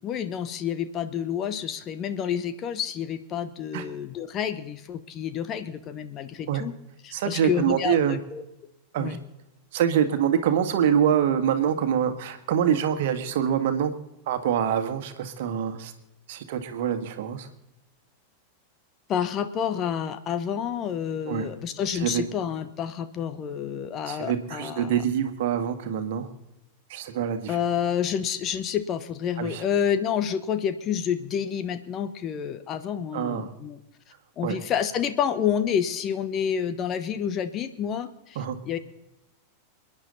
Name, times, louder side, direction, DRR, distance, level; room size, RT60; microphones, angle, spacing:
voice 1, 0.0-6.7 7.0-8.4 9.0-9.2 19.1-25.0 27.5-33.8 34.4-38.8, left 8 dB, 30° left, 11 dB, 1.1 m, -29 dB
voice 2, 7.1-8.2 8.9-9.2 9.7-13.9 14.3-15.9 16.3-17.5 21.3-21.5 22.0-22.2 24.1-26.3 26.9-27.6 29.4-29.6 33.1-33.5 34.4-34.5 38.4-38.6, right 9 dB, 55° right, 8 dB, 1.7 m, -25 dB
28.5 x 10.0 x 4.1 m, 0.90 s
figure-of-eight pair, 90°, 0 cm